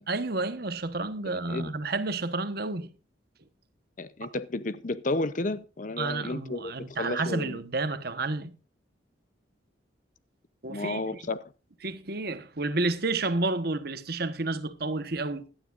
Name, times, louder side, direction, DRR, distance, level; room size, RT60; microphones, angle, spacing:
voice 1, 0.1-2.9 4.2-4.3 6.0-8.5 10.6-11.0 11.8-15.5, right 3 dB, 55° right, 1.3 m, -30 dB
voice 2, 1.2-1.7 4.0-7.6 10.7-11.4, left 2 dB, 45° left, 0.7 m, -32 dB
17.0 x 12.0 x 2.5 m
head